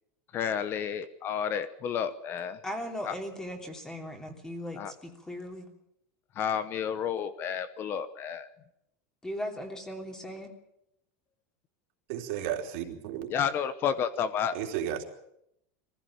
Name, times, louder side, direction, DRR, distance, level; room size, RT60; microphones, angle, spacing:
voice 1, 0.3-2.6 3.0-3.1 4.8-4.9 6.3-8.5 13.3-14.6, left 8 dB, 30° left, 13 dB, 1.0 m, -31 dB
voice 2, 2.6-5.7 9.2-10.5, equal, 10° left, 4 dB, 3.0 m, -38 dB
voice 3, 12.1-13.3 14.5-15.0, right 10 dB, 60° right, 3 dB, 3.5 m, -33 dB
22.5 x 15.5 x 8.6 m, 0.79 s
supercardioid pair, 160°, 7 cm